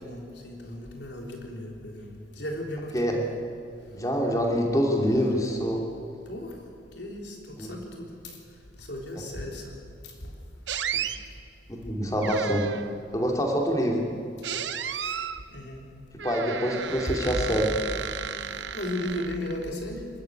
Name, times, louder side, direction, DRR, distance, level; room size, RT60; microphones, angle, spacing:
voice 1, 0.0-3.4 5.1-5.6 6.3-6.5 7.0-8.1 8.8-9.7 10.0-10.1 15.5-15.8 18.7-20.1, left 1 dB, 70° left, 1 dB, 3.8 m, -36 dB
voice 2, 3.9-5.8 7.6-7.7 11.7-12.8 13.1-14.1 16.2-17.7, equal, 20° left, 0 dB, 2.8 m, -25 dB
sound 1, 10.7-11.2 12.2-13.0 14.4-15.4 16.2-19.6, right 8 dB, 80° right, 0.9 m, -33 dB
25.5 x 13.5 x 9.2 m, 2.5 s
head